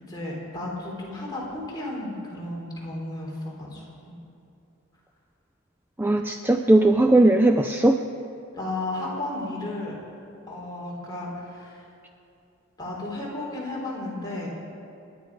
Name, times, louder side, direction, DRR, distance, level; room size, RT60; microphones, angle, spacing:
voice 1, 0.1-4.2 8.6-10.0 10.5-11.8 12.8-14.5, left 2 dB, 20° left, -4 dB, 3.5 m, -33 dB
voice 2, 6.0-8.0, right 2 dB, 10° right, 5 dB, 0.4 m, -18 dB
28.0 x 11.0 x 4.7 m, 2.6 s
head